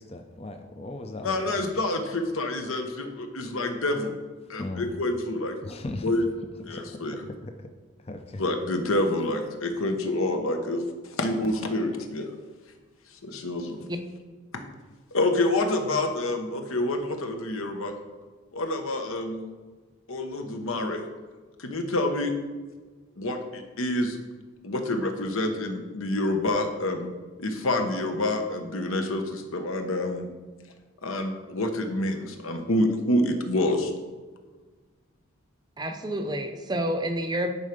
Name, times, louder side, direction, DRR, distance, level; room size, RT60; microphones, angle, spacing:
voice 1, 0.0-1.5 4.6-4.9 5.6-6.1 6.7-7.5 8.1-8.4, left 2 dB, 30° left, 5 dB, 0.5 m, -37 dB
voice 2, 1.2-4.1 4.5-5.5 6.0-6.3 6.7-7.1 8.4-10.8 11.2-12.3 13.2-13.8 14.5-14.6 15.1-17.9 18.5-19.5 20.1-21.0 21.6-22.3 23.2-24.2 24.6-27.1 27.4-30.3 31.0-33.9, left 1 dB, 80° left, 5 dB, 1.1 m, -27 dB
voice 3, 35.8-37.5, right 1 dB, 20° right, 6 dB, 0.5 m, -29 dB
9.9 x 4.6 x 5.2 m, 1.4 s
head